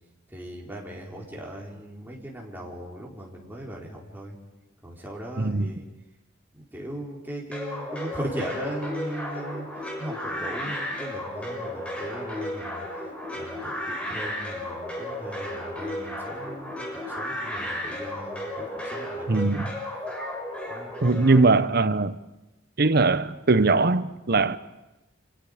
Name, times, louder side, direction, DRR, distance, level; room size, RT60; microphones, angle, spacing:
voice 1, 0.3-4.4 4.8-5.8 6.5-9.7 10.0-12.9 13.3-19.6 20.7-20.9, right 1 dB, 10° right, 4.2 m, -38 dB
voice 2, 5.4-5.7 19.3-19.7 21.0-22.2 22.8-24.6, right 3 dB, 55° right, 0.9 m, -21 dB
sound 1, 7.5-21.4, left 1 dB, 5° left, 6.1 m, -34 dB
29.5 x 26.5 x 5.1 m
head